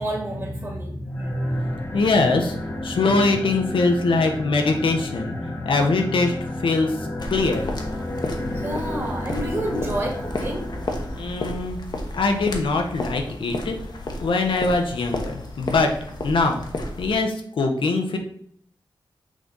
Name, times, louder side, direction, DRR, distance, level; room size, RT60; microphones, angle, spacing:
voice 1, 0.0-1.8 8.6-10.7, right 1 dB, 30° right, 0 dB, 2.0 m, -28 dB
sound 1, 1.1-11.5, left 1 dB, 30° left, 1.0 m, -32 dB
voice 2, 1.9-2.5 2.8-5.3 5.6-7.0 7.3-7.6 11.1-11.8 12.1-13.8 14.2-15.9 16.2-16.6 17.0-18.2, left 3 dB, 85° left, 4 dB, 1.0 m, -22 dB
sound 2, 7.2-17.2, left 2 dB, 60° left, 1.1 m, -32 dB
6.5 x 4.0 x 3.8 m, 0.64 s
wide cardioid pair, 100°, 9 cm